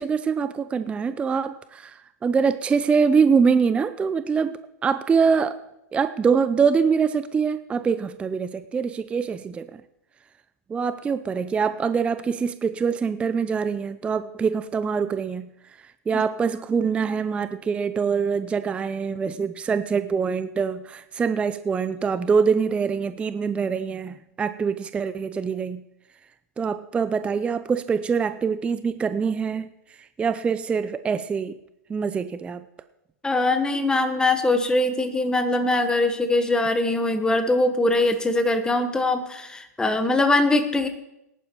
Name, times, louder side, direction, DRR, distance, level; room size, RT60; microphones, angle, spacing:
voice 1, 0.0-5.6 5.9-9.8 10.7-25.8 26.6-31.6 31.9-32.6, right 6 dB, 10° right, 12 dB, 0.4 m, -24 dB
voice 2, 33.2-40.9, left 2 dB, 10° left, 8 dB, 1.2 m, -22 dB
19.5 x 11.0 x 3.0 m, 0.86 s
hypercardioid pair, 120°, 9 cm